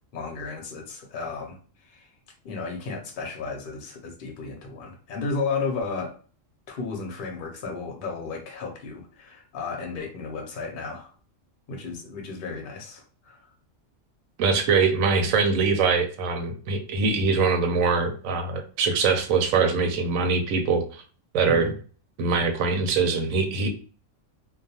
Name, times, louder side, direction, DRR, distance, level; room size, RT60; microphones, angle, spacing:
voice 1, 0.1-1.6 1.8-2.1 2.4-6.1 6.7-11.1 11.7-13.4 21.5-21.7, left 4 dB, 55° left, 2 dB, 0.7 m, -33 dB
voice 2, 14.4-21.0 21.3-21.7 22.2-23.7, right 4 dB, 85° right, 5 dB, 1.0 m, -23 dB
2.3 x 2.2 x 2.7 m, 0.39 s
omnidirectional pair, 1.4 m